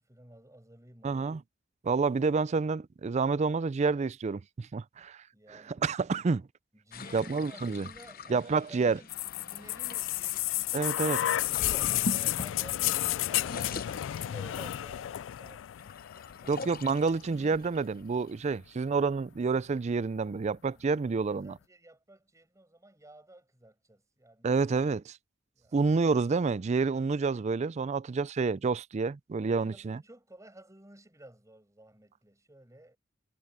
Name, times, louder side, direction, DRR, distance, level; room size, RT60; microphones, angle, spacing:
voice 1, 0.0-1.4 5.3-5.8 6.8-15.9 16.4-16.7 20.6-24.7 25.5-25.8 29.4-33.0, right 1 dB, 15° right, 6.0 m, -54 dB
voice 2, 1.0-1.4 1.8-5.2 5.5-6.5 7.1-7.9 8.3-9.0 10.7-11.2 16.5-21.5 24.4-25.2 25.7-30.0, right 4 dB, 35° right, 0.4 m, -28 dB
sound 1, 6.9-10.5 11.3-13.0 13.3-14.8 15.3-18.7, left 3 dB, 50° left, 0.9 m, -43 dB
sound 2, 9.1-17.0 18.0-18.1, left 14 dB, 70° left, 0.3 m, -31 dB
head